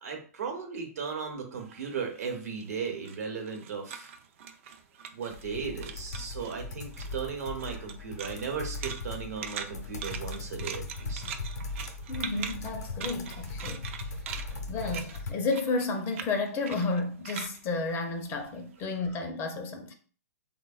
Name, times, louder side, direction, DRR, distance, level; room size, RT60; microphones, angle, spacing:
voice 1, 0.0-4.1 5.1-11.2, right 6 dB, 70° right, 0.9 m, -36 dB
sound 1, 1.6-5.6 5.8-6.6 6.9-18.7, right 7 dB, 50° right, 0.4 m, -42 dB
sound 2, 5.3-15.3, left 3 dB, 75° left, 0.5 m, -39 dB
voice 2, 12.1-13.9 14.7-19.9, left 3 dB, 25° left, 0.4 m, -32 dB
3.4 x 2.1 x 2.3 m
hypercardioid pair, 120°, 9 cm